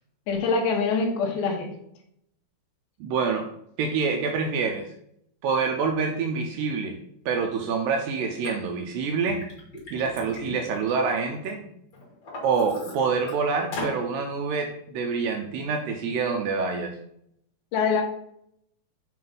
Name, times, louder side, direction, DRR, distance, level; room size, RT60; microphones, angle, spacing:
voice 1, 0.3-1.7 17.7-18.0, left 4 dB, 75° left, 2 dB, 3.0 m, -24 dB
voice 2, 3.0-3.5 3.8-4.9 5.4-7.0 7.3-9.4 9.9-11.6 12.4-16.9, right 5 dB, 80° right, 3 dB, 2.1 m, -26 dB
Liquid, 8.4-8.5 9.1-11.5 11.9-13.3 13.7-14.0, left 2 dB, 35° left, 2.1 m, -38 dB
7.6 x 3.1 x 5.3 m, 0.71 s
omnidirectional pair, 4.5 m